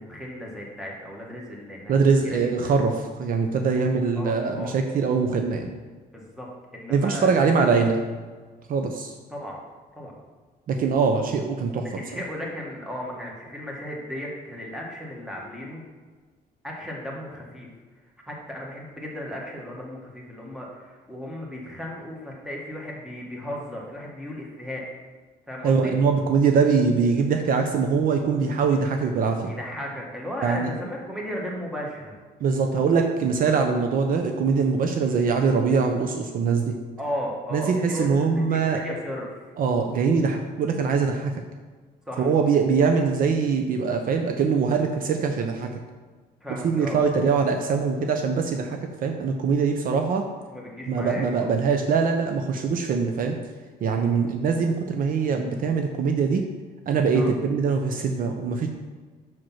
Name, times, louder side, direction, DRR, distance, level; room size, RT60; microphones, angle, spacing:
voice 1, 0.0-1.9 2.2-2.7 4.2-4.8 6.1-6.5 6.7-7.7 9.3-9.6 10.0-10.1 11.8-15.8 16.6-17.7 18.3-24.8 25.5-25.9 29.5-32.2 37.0-39.5 42.1-42.3 46.4-47.1 50.5-51.5 53.9-54.3 57.1-57.3, equal, 5° right, -2 dB, 1.8 m, -35 dB
voice 2, 1.9-5.7 6.9-8.0 8.7-9.1 10.7-11.9 25.6-29.5 30.4-30.7 32.4-36.8 37.5-38.8 39.6-41.4 42.2-45.7 46.6-50.3 50.9-53.3 53.8-56.4 56.9-58.7, right 5 dB, 55° right, 5 dB, 0.7 m, -23 dB
6.0 x 5.1 x 5.8 m, 1.4 s
cardioid pair, 110°, 17 cm